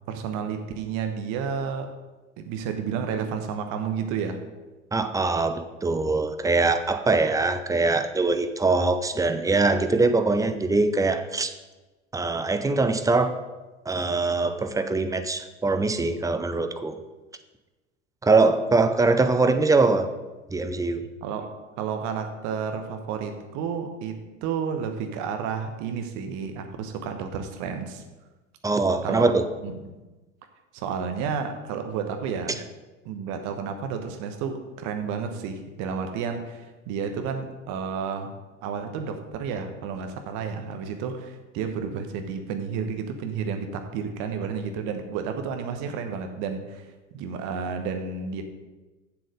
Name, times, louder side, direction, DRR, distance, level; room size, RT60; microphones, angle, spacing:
voice 1, 0.1-1.9 2.4-4.4 21.2-21.5 21.8-28.0 29.0-29.3 29.6-29.9 30.7-32.6 33.0-38.3 38.6-48.4, right 6 dB, 50° right, 6 dB, 1.2 m, -31 dB
voice 2, 4.9-11.5 12.1-13.4 13.9-17.0 18.2-20.1 20.5-21.1 28.6-29.4, right 3 dB, 10° right, 9 dB, 0.6 m, -22 dB
7.7 x 7.5 x 5.2 m, 1.2 s
figure-of-eight pair, 65°, 36 cm